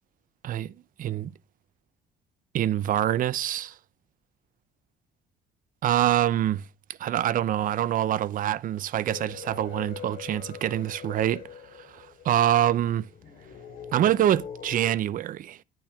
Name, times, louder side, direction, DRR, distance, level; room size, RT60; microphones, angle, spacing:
voice 1, 1.0-1.3 2.5-3.7 5.8-6.6 7.0-11.4 12.2-13.1 13.9-15.6, right 11 dB, 55° right, 0.6 m, -25 dB
sound 1, 9.1-14.9, left 7 dB, 60° left, 3.6 m, -43 dB
10.0 x 9.1 x 3.5 m
cardioid pair, 110°, 17 cm